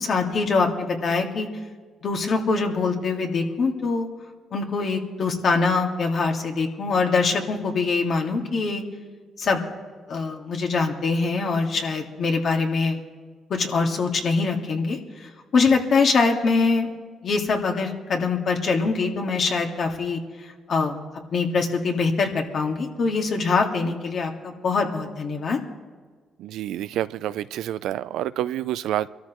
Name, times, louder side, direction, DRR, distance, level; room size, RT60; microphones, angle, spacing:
voice 1, 0.0-1.5 2.0-4.1 4.5-8.8 9.4-9.6 10.1-13.0 13.5-21.0 21.3-25.6, left 4 dB, 55° left, 2 dB, 2.0 m, -23 dB
voice 2, 26.4-29.1, right 12 dB, 85° right, 15 dB, 0.4 m, -28 dB
24.0 x 13.5 x 3.1 m, 1.5 s
cardioid pair, 90°, 0 cm